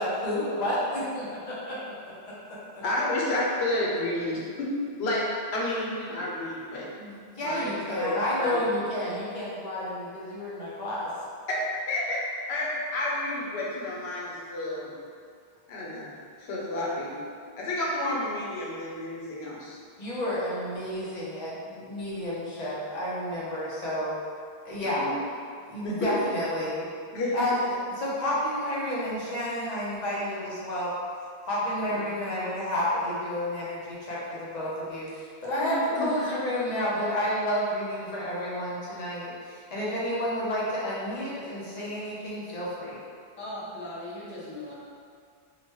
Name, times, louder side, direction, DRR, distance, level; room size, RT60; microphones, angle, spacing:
voice 1, 0.0-1.8 2.2-2.8 7.0-11.1 20.0-24.1 24.6-25.1 25.7-26.9 27.3-30.9 31.4-43.0, left 1 dB, 45° left, -7 dB, 0.7 m, -30 dB
voice 2, 2.8-6.9 7.4-8.7 11.5-12.2 12.5-14.9 15.7-16.1 16.4-17.2 17.6-19.8 25.0-25.2 25.8-26.3 27.1-27.3 31.9-32.0 35.6-36.1, left 1 dB, 85° left, -4 dB, 0.9 m, -30 dB
voice 3, 43.4-44.7, left 1 dB, 15° left, -9 dB, 0.4 m, -38 dB
3.0 x 2.2 x 3.0 m, 2.2 s
omnidirectional pair, 1.1 m